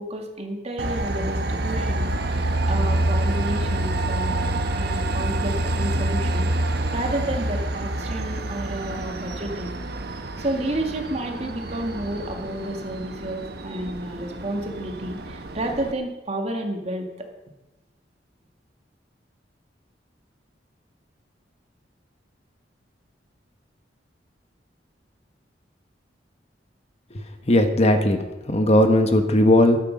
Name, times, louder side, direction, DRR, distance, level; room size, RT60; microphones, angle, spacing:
voice 1, 0.0-4.5 4.7-6.5 6.9-9.7 10.4-17.3, right 1 dB, 35° right, 3 dB, 2.2 m, -31 dB
Train, 0.8-15.9, right 1 dB, 60° right, 1.2 m, -27 dB
voice 2, 27.5-28.2 28.5-29.8, left 1 dB, 35° left, 7 dB, 1.3 m, -17 dB
13.5 x 13.5 x 5.4 m, 1.0 s
head